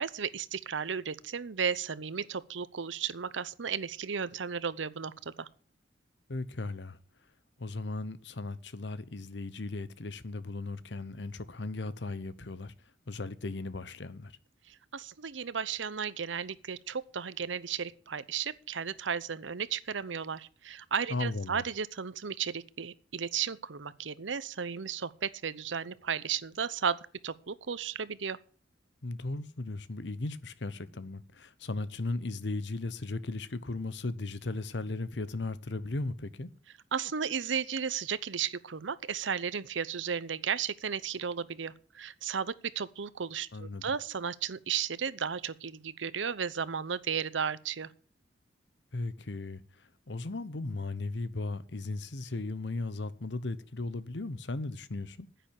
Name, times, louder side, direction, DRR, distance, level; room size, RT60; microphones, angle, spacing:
voice 1, 0.0-5.5 14.7-28.4 36.9-47.9, right 7 dB, 85° right, 0.8 m, -34 dB
voice 2, 6.3-7.0 7.6-12.7 13.1-14.4 21.1-21.6 29.0-36.5 43.5-43.9 48.9-55.3, left 2 dB, 70° left, 0.9 m, -36 dB
10.0 x 9.0 x 8.7 m
head